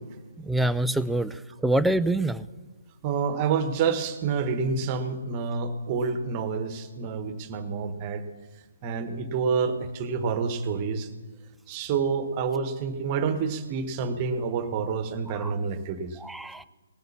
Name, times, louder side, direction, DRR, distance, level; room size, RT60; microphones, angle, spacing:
voice 1, 0.4-2.5 15.4-15.5 16.2-16.6, right 1 dB, 5° right, 12 dB, 0.4 m, -26 dB
voice 2, 3.0-8.2 8.8-11.1 11.7-16.2, right 5 dB, 30° right, 10 dB, 1.2 m, -28 dB
18.5 x 8.0 x 7.1 m, 1.3 s
figure-of-eight pair, 135°, 0 cm